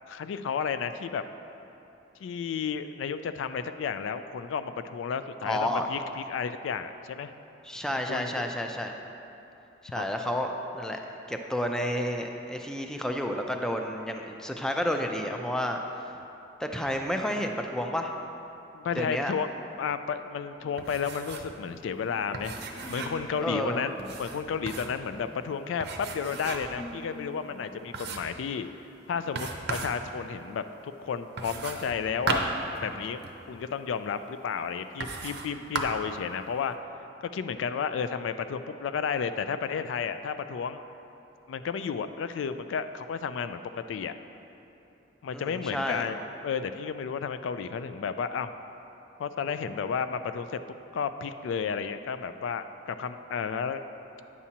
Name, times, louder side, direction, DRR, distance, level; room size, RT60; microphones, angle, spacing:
voice 1, 0.1-1.2 2.2-7.3 7.9-8.5 10.0-10.1 15.0-15.1 18.7-22.5 22.9-23.9 24.2-28.7 29.1-32.4 32.8-33.2 33.5-36.7 37.3-40.8 41.5-44.1 45.2-48.5 49.2-50.6 50.9-53.8, left 6 dB, 85° left, 10 dB, 0.3 m, -32 dB
voice 2, 5.5-5.9 7.6-8.9 9.9-11.0 11.3-15.8 16.6-18.1 19.0-19.3 23.4-23.8 45.3-46.1, equal, 5° left, 3 dB, 0.4 m, -30 dB
sound 1, 20.6-27.8, left 1 dB, 40° left, 0.6 m, -47 dB
sound 2, 20.8-21.6 21.8-21.9 22.3-23.3 24.0-25.0 25.8-26.8 27.3-27.4 27.9-28.4 29.3-30.0 31.4-33.4 34.2-34.3 35.0-35.5 35.7-36.1, right 3 dB, 60° right, 0.6 m, -35 dB
9.6 x 7.2 x 2.8 m, 2.9 s
head